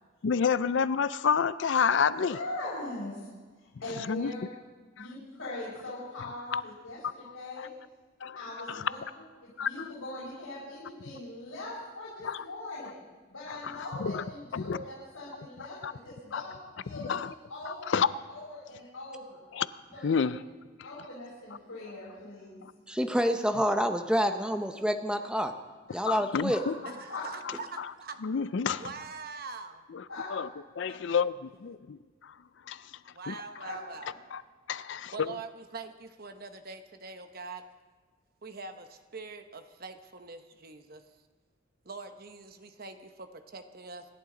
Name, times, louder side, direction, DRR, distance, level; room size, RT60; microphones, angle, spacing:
voice 1, 0.2-2.4 4.1-4.3 5.0-5.1 6.2-6.6 8.2-8.4 8.7-8.8 9.6-9.7 12.2-12.4 13.5-14.2 14.5-14.8 15.8-15.9 16.3-16.4 17.1-17.3 17.9-18.1 19.5-19.7 20.0-20.4 26.0-26.7 27.8-27.9 28.2-28.9 29.9-30.1 30.3-30.5 30.8-32.0 32.7-32.8 33.3-33.6 34.3-34.4 34.7-35.4, left 6 dB, 60° left, 0.4 m, -29 dB
voice 2, 2.1-3.3 3.8-4.4 4.9-7.7 8.4-9.0 9.4-13.0 13.3-16.5 16.8-19.4 19.9-20.2 20.8-22.6 25.9-26.1 27.1-27.2 30.1-30.3 33.6-34.1, left 2 dB, 90° left, 5.1 m, -41 dB
voice 3, 22.9-25.5 25.9-26.6, equal, 5° right, 0.7 m, -27 dB
voice 4, 27.2-28.2 28.8-29.8 30.9-31.0 33.1-34.1 35.1-37.6 38.4-41.0 41.9-44.0, right 4 dB, 45° right, 1.0 m, -43 dB
26.0 x 11.0 x 3.8 m
head